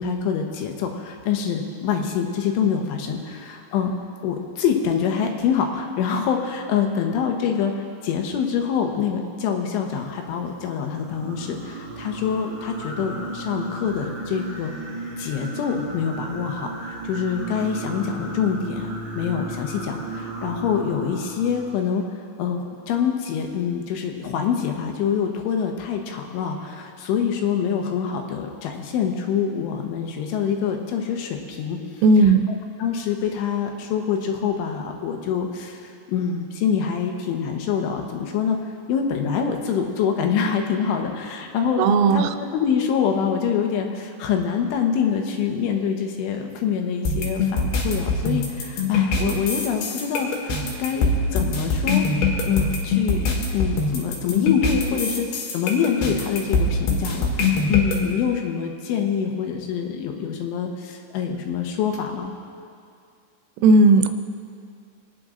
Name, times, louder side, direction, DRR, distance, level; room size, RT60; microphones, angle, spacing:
voice 1, 0.0-3.9 4.2-7.7 8.0-14.7 15.2-22.1 22.4-31.8 32.2-32.3 32.8-38.6 38.9-52.1 52.5-62.4, left 7 dB, 80° left, 3 dB, 3.5 m, -25 dB
Singing, 10.9-21.6, right 2 dB, 55° right, 1.8 m, -34 dB
voice 2, 32.0-32.5 41.8-42.3 63.6-64.1, right 3 dB, 85° right, 8 dB, 3.3 m, -15 dB
sound 1, 47.1-58.0, left 3 dB, 65° left, 3.4 m, -23 dB
26.5 x 9.7 x 3.8 m, 2.3 s
omnidirectional pair, 5.6 m